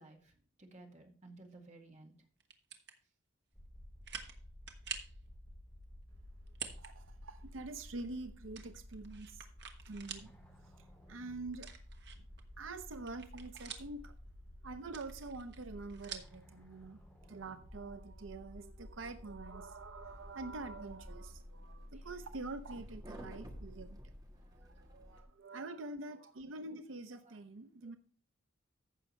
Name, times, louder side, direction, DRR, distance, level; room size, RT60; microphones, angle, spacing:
voice 1, 0.0-2.1 21.9-22.0 24.4-25.2 27.2-27.4 27.8-27.9, right 2 dB, 35° right, 2.0 m, -58 dB
sound 1, 2.4-3.0 3.5-3.6 4.0-4.4 4.7-5.2 6.5-6.9 7.3-7.4 8.5-10.3 10.7-10.8 11.5-12.4 12.8-14.1 14.8-16.4, right 7 dB, 60° right, 1.3 m, -47 dB
sound 2, 3.5-21.4, equal, 5° left, 3.8 m, -54 dB
voice 2, 6.8-9.5 9.9-10.3 10.6-11.7 12.2-12.3 12.6-14.1 14.6-24.0 24.6-28.0, right 3 dB, 85° right, 0.7 m, -46 dB
sound 3, 20.0-25.2, equal, 20° right, 1.5 m, -51 dB
15.0 x 6.3 x 3.2 m
head